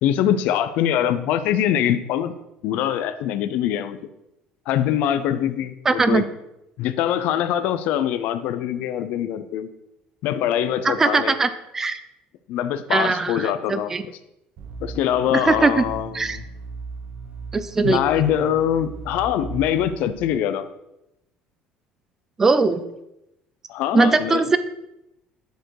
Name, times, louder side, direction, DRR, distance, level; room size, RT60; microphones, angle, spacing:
voice 1, 0.0-2.3 2.6-4.0 4.7-6.2 6.8-9.7 10.2-11.4 12.5-13.9 14.8-16.4 17.8-20.6 23.7-24.4, left 10 dB, 60° left, 11 dB, 0.5 m, -23 dB
voice 2, 5.9-6.2 10.8-11.5 11.7-12.0 12.9-14.0 15.3-15.8 16.1-16.4 17.5-18.0 22.4-22.8 23.9-24.6, right 3 dB, 15° right, 12 dB, 0.4 m, -20 dB
sound 1, 14.6-20.1, right 4 dB, 50° right, 0.9 m, -37 dB
10.5 x 4.5 x 4.7 m, 0.87 s
cardioid pair, 180°, 3 cm